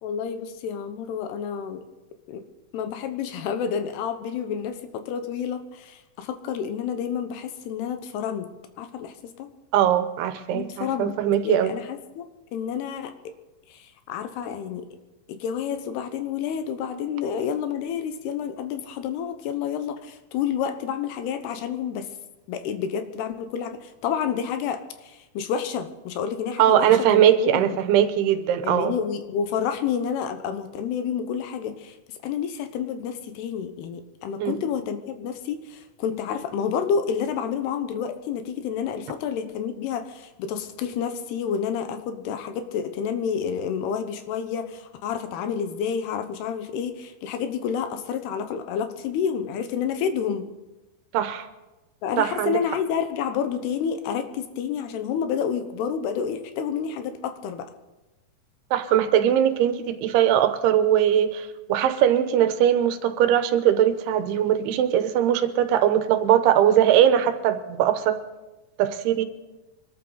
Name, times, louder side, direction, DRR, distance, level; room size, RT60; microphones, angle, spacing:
voice 1, 0.0-1.8 2.3-2.4 2.7-8.5 8.8-9.5 10.5-11.1 11.4-13.3 13.7-14.9 15.3-22.1 22.5-27.7 28.6-32.0 32.2-50.5 52.0-57.7, left 7 dB, 90° left, 8 dB, 3.1 m, -29 dB
voice 2, 9.7-11.8 26.6-28.9 34.4-34.6 51.1-51.5 52.2-52.6 58.7-68.2 68.8-69.2, right 10 dB, 85° right, 10 dB, 3.0 m, -20 dB
24.0 x 13.0 x 4.0 m, 1.1 s
omnidirectional pair, 4.5 m